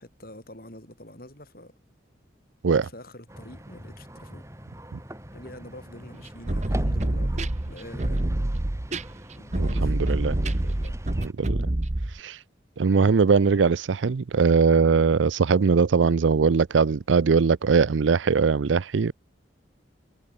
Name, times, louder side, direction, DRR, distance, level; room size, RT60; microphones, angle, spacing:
voice 1, 0.0-1.8 2.7-4.4 5.3-8.4 9.4-10.0 10.5-11.0, left 1 dB, 50° left, 7.3 m, -45 dB
sound 1, 3.3-11.3, equal, 15° right, 7.4 m, -42 dB
sound 2, 6.3-12.2, right 1 dB, 40° right, 1.1 m, -26 dB
voice 2, 9.6-10.3 11.4-11.6 12.2-12.4 12.8-19.1, right 5 dB, 90° right, 0.5 m, -21 dB
head